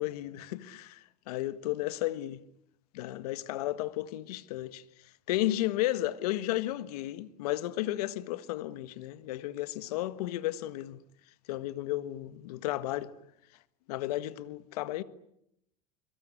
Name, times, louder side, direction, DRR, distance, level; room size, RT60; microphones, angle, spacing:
voice 1, 0.0-2.4 2.9-11.0 11.5-13.1 13.9-15.0, left 15 dB, 80° left, 1.6 m, -33 dB
24.5 x 24.0 x 9.9 m
supercardioid pair, 115°, 19 cm